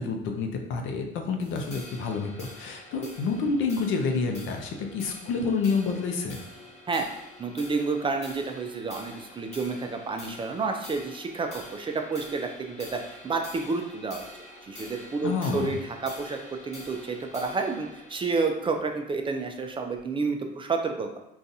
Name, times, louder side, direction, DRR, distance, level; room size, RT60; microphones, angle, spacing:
voice 1, 0.0-6.4 15.2-15.8, left 4 dB, 70° left, 3 dB, 0.6 m, -28 dB
sound 1, 1.4-20.0, left 1 dB, 35° left, 1.2 m, -47 dB
voice 2, 7.4-14.2 14.6-16.4 16.6-21.2, right 4 dB, 25° right, 4 dB, 0.4 m, -30 dB
3.9 x 2.4 x 2.6 m, 0.83 s
cardioid pair, 100°, 21 cm